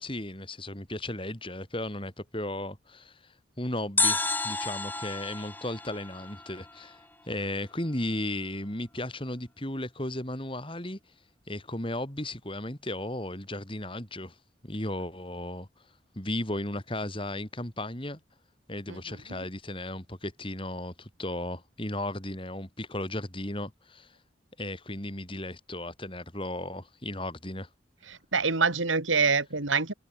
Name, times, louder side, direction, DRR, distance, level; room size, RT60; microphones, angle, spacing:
voice 1, 0.0-11.0 11.5-14.3 14.6-15.7 16.1-18.2 18.7-24.2 24.6-27.7, left 1 dB, 25° left, 4.9 m, -35 dB
sound 1, 4.0-7.1 7.3-7.4, left 3 dB, 10° left, 2.6 m, -31 dB
voice 2, 28.1-29.9, right 4 dB, 85° right, 2.7 m, -26 dB
head